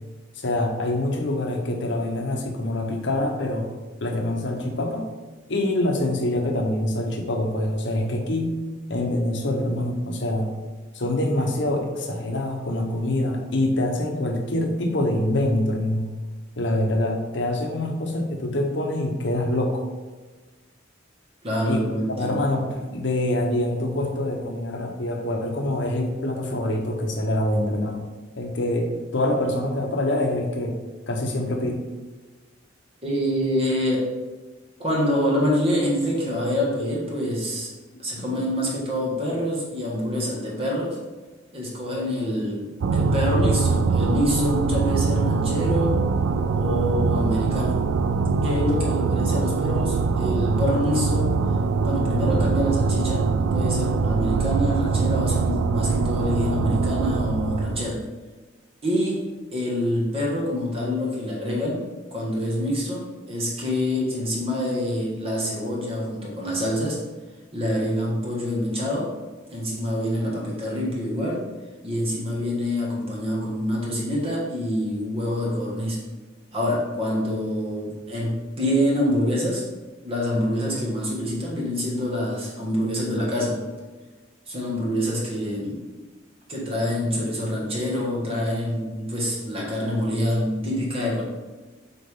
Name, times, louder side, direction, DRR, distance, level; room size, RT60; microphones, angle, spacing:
voice 1, 0.4-3.7 4.0-5.1 5.5-8.6 8.9-10.5 10.9-16.1 16.6-19.9 21.6-28.1 28.4-30.8 31.1-31.9 38.2-38.3, left 1 dB, 65° left, 3 dB, 1.0 m, -25 dB
voice 2, 21.4-22.4 33.0-34.1 34.8-37.7 38.0-41.0 41.5-46.0 46.6-47.8 48.4-51.3 51.8-58.0 58.8-61.8 62.1-67.0 67.5-69.1 69.5-71.5 71.8-76.0 76.5-79.7 80.0-83.6 84.5-85.8 86.5-91.2, equal, 30° right, -3 dB, 1.9 m, -26 dB
sound 1, 42.8-58.0, right 4 dB, 85° right, 0.4 m, -23 dB
8.1 x 4.3 x 3.7 m, 1.3 s
head